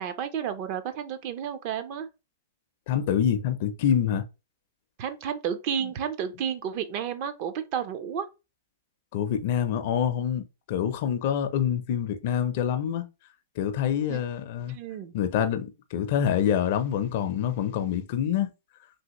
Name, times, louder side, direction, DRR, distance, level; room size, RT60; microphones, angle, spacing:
voice 1, 0.0-2.1 5.0-8.3 14.1-14.2 14.7-15.1, right 8 dB, 45° right, 0.5 m, -31 dB
voice 2, 2.9-4.3 9.1-13.0 13.6-14.8 15.1-18.5, left 9 dB, 50° left, 0.5 m, -26 dB
3.3 x 2.4 x 2.9 m
hypercardioid pair, 145°, 0 cm